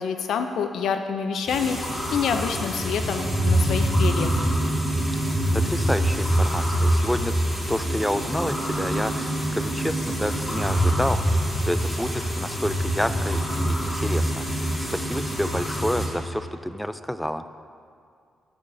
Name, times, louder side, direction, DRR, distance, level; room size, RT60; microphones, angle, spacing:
voice 1, 0.0-1.8 2.1-4.3, left 6 dB, 80° left, 7 dB, 0.4 m, -27 dB
sound 1, 1.5-16.1, right 1 dB, 20° left, 2.4 m, -25 dB
voice 2, 5.5-7.3 7.7-11.2 11.6-14.6 14.9-17.5, equal, 5° left, 11 dB, 0.4 m, -29 dB
15.0 x 7.1 x 2.6 m, 2.3 s
cardioid pair, 95°, 0 cm